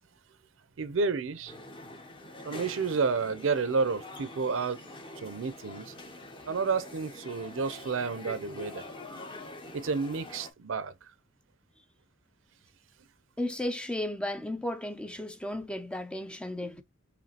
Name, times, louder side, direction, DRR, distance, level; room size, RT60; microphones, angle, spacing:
voice 1, 0.8-1.5 2.4-4.8 5.2-5.9 6.5-8.8 9.7-10.9, right 4 dB, 75° right, 0.6 m, -30 dB
sound 1, 1.5-10.5, left 1 dB, 25° left, 0.8 m, -45 dB
voice 2, 13.4-16.8, left 1 dB, 5° left, 0.4 m, -34 dB
5.1 x 2.6 x 2.8 m
head